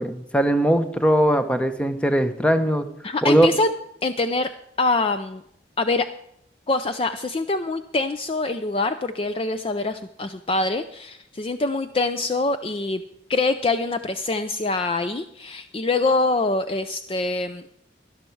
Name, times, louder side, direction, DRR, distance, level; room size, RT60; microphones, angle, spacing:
voice 1, 0.0-2.9 3.2-3.5, right 1 dB, 5° left, 8 dB, 0.8 m, -20 dB
voice 2, 3.0-3.7 4.0-4.5 4.8-5.4 5.8-6.1 6.7-13.0 13.3-17.6, left 3 dB, 30° left, 9 dB, 0.4 m, -24 dB
12.5 x 11.5 x 4.6 m, 0.76 s
head